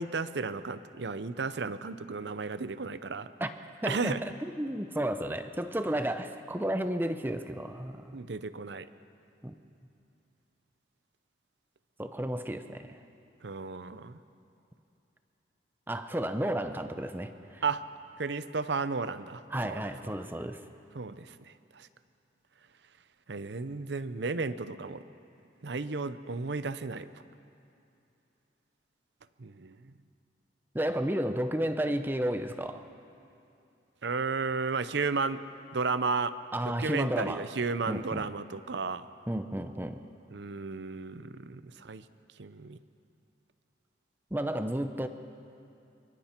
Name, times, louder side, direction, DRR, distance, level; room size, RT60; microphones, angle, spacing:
voice 1, 0.0-3.3 3.8-4.2 8.1-8.9 13.4-14.2 17.6-17.8 18.2-19.8 20.9-21.3 21.8-21.9 23.3-25.0 25.6-27.1 29.4-29.8 34.0-35.4 35.7-36.3 36.8-39.0 40.3-42.0 42.4-42.8, right 4 dB, 70° right, 13 dB, 0.7 m, -33 dB
voice 2, 3.8-8.2 9.4-9.5 12.0-13.0 15.9-17.6 19.5-20.6 30.7-32.8 36.5-37.5 37.9-38.3 39.3-40.0 44.3-45.1, right 1 dB, 10° right, 8 dB, 0.6 m, -32 dB
24.5 x 23.5 x 4.5 m, 2.7 s
head